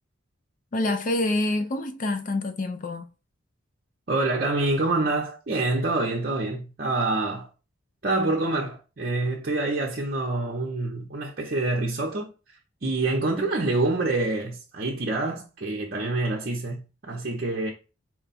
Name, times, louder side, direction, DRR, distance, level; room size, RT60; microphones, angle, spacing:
voice 1, 0.7-3.1, left 2 dB, 40° left, 0.4 m, -26 dB
voice 2, 4.1-7.5 8.0-17.7, right 2 dB, 45° right, 0.6 m, -26 dB
4.5 x 2.2 x 4.0 m
head